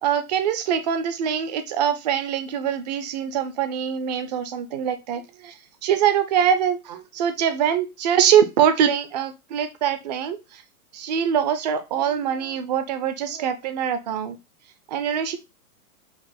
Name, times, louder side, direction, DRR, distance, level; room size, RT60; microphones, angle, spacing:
voice 1, 0.0-5.5 5.8-10.6 10.9-14.4 14.9-15.4, right 8 dB, 30° right, 10 dB, 0.4 m, -23 dB
5.4 x 2.2 x 4.1 m, 0.25 s
hypercardioid pair, 150°, 45 cm